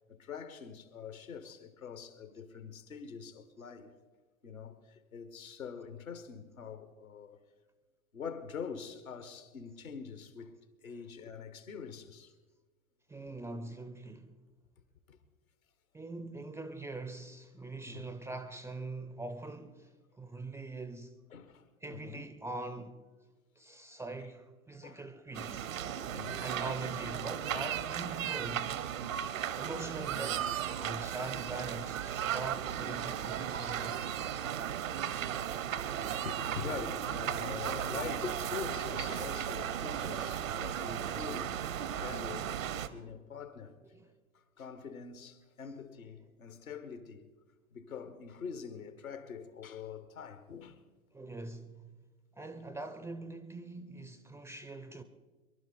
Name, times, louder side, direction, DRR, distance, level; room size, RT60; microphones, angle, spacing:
voice 1, 0.1-4.0 4.4-7.4 8.1-10.5 10.8-12.3 15.1-15.2 17.9-18.0 21.3-22.3 24.8-25.0 26.0-26.4 28.1-28.2 35.4-35.5 36.2-42.6 42.9-43.7 44.3-47.3 47.7-50.8, left 6 dB, 80° left, 1.6 m, -44 dB
voice 2, 13.1-14.4 15.9-21.2 21.8-23.1 23.6-25.7 26.4-28.8 29.6-34.1 43.9-44.1 51.1-51.8 52.3-55.0, right 2 dB, 5° right, 0.5 m, -43 dB
sound 1, 25.3-42.9, right 9 dB, 70° right, 0.9 m, -36 dB
24.0 x 11.5 x 4.2 m
figure-of-eight pair, 95°, 41 cm